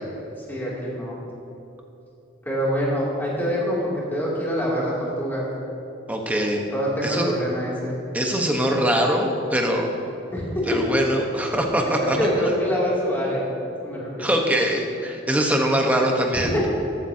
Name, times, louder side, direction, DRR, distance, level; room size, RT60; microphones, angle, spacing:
voice 1, 0.5-1.2 2.4-5.5 6.7-8.0 10.3-10.8 12.0-13.5 13.8-14.4 16.5-16.7, equal, 10° left, -6 dB, 2.7 m, -25 dB
voice 2, 6.1-6.6 7.0-7.3 8.1-9.9 10.7-12.2 14.2-16.7, equal, 10° right, 1 dB, 1.1 m, -22 dB
14.0 x 13.0 x 2.8 m, 3.0 s
head